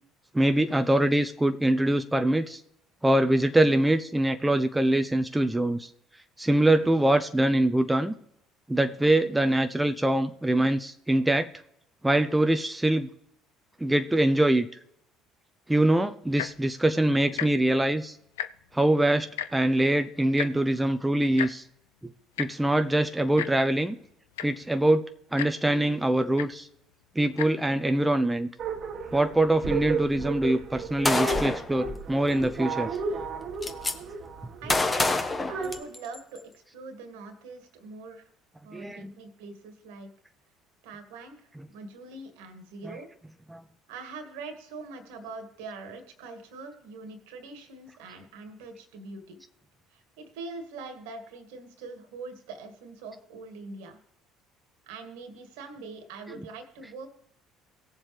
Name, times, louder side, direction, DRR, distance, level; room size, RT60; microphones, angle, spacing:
voice 1, 0.3-2.6 3.0-5.8 6.4-8.1 8.7-11.5 12.0-13.1 13.8-14.7 15.7-18.1 18.7-19.3 19.5-21.6 22.4-24.0 24.4-25.1 25.3-26.7 27.2-28.5 29.1-32.9 38.7-39.1 42.8-43.0, right 1 dB, 10° right, 7 dB, 0.7 m, -23 dB
Tick-tock, 16.3-16.6 17.3-17.5 17.8-17.9 18.2-18.7 19.4-19.5 20.4-20.5 21.4-21.5 22.4-22.5 23.4-23.5 24.1-24.2 24.3-24.7 25.4-25.5 26.4-26.5 27.3-27.5 28.2-28.3, left 12 dB, 80° left, 0.4 m, -32 dB
sound 1, 28.6-35.8, right 4 dB, 50° right, 1.3 m, -34 dB
Gunshot gunfire, 31.0-31.7 32.8-32.9 33.2-33.9 34.7-36.2, left 2 dB, 20° left, 1.3 m, -26 dB
voice 2, 34.6-35.2 35.5-38.3 38.6-40.1 40.8-43.1 43.9-49.4 49.9-54.0 54.8-57.1, right 3 dB, 75° right, 7 dB, 1.8 m, -43 dB
18.0 x 7.2 x 3.3 m, 0.74 s
hypercardioid pair, 60°, 0 cm